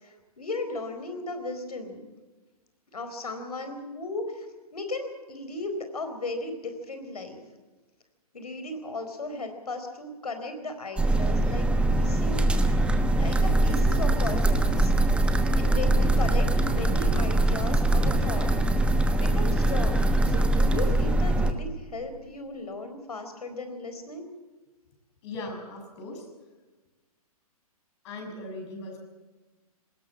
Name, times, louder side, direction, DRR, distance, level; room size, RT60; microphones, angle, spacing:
voice 1, 0.0-2.0 2.9-4.5 4.7-7.4 8.3-12.8 13.1-14.9 15.6-18.6 18.9-24.2, left 2 dB, 75° left, 7 dB, 4.3 m, -36 dB
sound 1, 11.0-21.5, right 1 dB, 5° right, 1.1 m, -22 dB
voice 2, 25.2-26.3 28.0-29.0, left 2 dB, 45° left, 3 dB, 6.5 m, -38 dB
20.0 x 18.0 x 7.4 m, 1.2 s
figure-of-eight pair, 125°, 20 cm